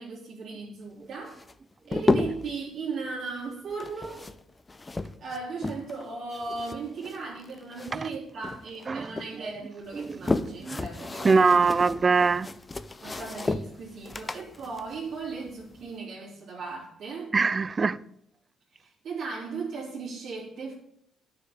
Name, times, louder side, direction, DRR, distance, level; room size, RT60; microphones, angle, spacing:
voice 1, 0.0-1.4 1.9-4.2 5.2-11.5 13.0-17.3 18.7-20.7, right 4 dB, 65° right, 3.5 m, -37 dB
sound 1, 1.3-2.6 3.7-6.0 6.3-8.2 8.4-9.3 9.8-15.9, left 3 dB, 25° left, 0.8 m, -32 dB
voice 2, 11.2-12.5 17.3-18.0, right 4 dB, 35° right, 0.5 m, -22 dB
9.4 x 6.8 x 8.9 m
cardioid pair, 90°, 0 cm